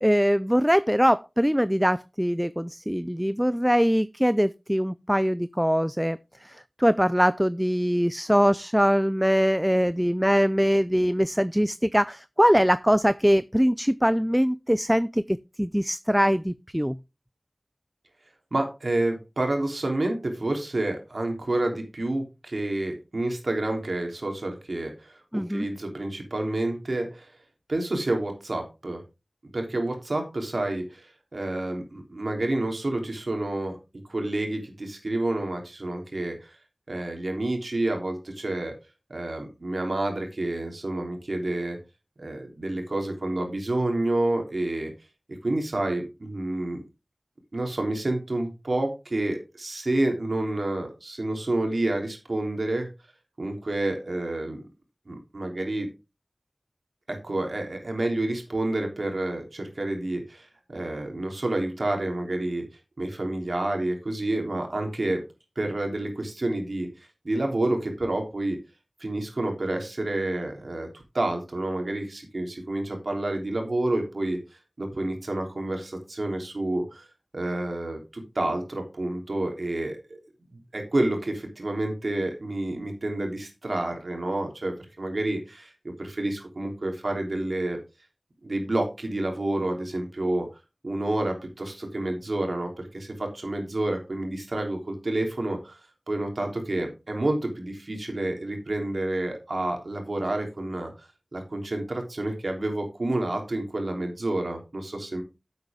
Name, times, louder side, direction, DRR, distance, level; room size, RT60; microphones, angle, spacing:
voice 1, 0.0-17.0 25.3-25.7, equal, 5° right, 0.4 m, -22 dB
voice 2, 18.5-27.3 27.7-29.0 29.5-33.8 34.1-36.5 36.9-38.8 39.1-41.8 42.2-44.9 45.4-46.8 47.5-52.9 53.4-54.6 55.0-55.9 57.1-62.6 63.0-65.2 65.5-66.9 67.2-68.6 69.0-70.9 71.1-74.4 74.8-77.1 77.3-80.2 80.5-87.8 88.4-90.5 90.8-95.8 96.1-100.9 101.3-105.2, right 2 dB, 80° right, 3.3 m, -29 dB
10.5 x 8.0 x 3.6 m
wide cardioid pair, 45°, 0 cm